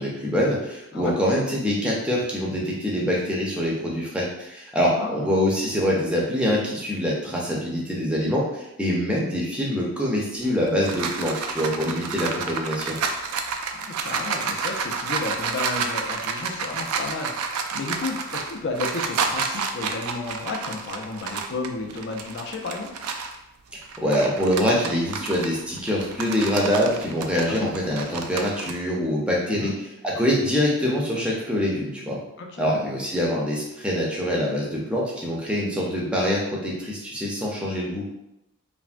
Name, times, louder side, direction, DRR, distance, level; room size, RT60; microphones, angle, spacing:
voice 1, 0.0-13.0 24.0-29.7 30.0-32.2 32.6-38.0, equal, 5° right, -4 dB, 0.5 m, -24 dB
voice 2, 4.9-5.3 13.7-23.0 27.5-27.7 29.5-29.8 32.4-32.9, left 3 dB, 50° left, 2 dB, 0.4 m, -32 dB
sound 1, 10.4-23.4 23.8-28.7, right 5 dB, 70° right, 0.3 m, -30 dB
3.3 x 2.1 x 2.5 m, 0.88 s
head